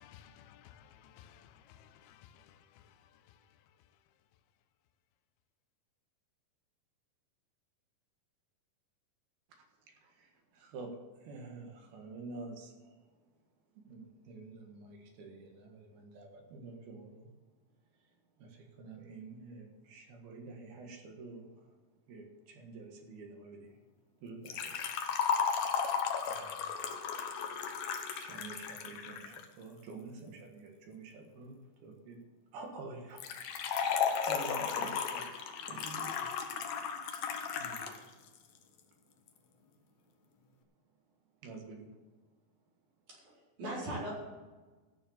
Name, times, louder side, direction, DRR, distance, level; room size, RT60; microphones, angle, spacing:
voice 1, 0.0-2.2, left 9 dB, 85° left, 2.6 m, -57 dB
voice 2, 9.6-13.1 13.8-17.3 18.4-21.8 22.1-23.8 24.2-25.0 25.2-25.6 26.2-26.8 28.1-32.2 32.5-36.3 36.6-37.3 37.5-38.1 41.4-41.9, right 3 dB, 80° right, 3.6 m, -49 dB
Liquid, 24.5-29.4 33.2-38.0 38.3-38.4 39.3-39.4, left 6 dB, 70° left, 1.8 m, -34 dB
voice 3, 43.1-44.1, right 1 dB, 55° right, 5.8 m, -40 dB
14.0 x 6.7 x 7.3 m
omnidirectional pair, 4.3 m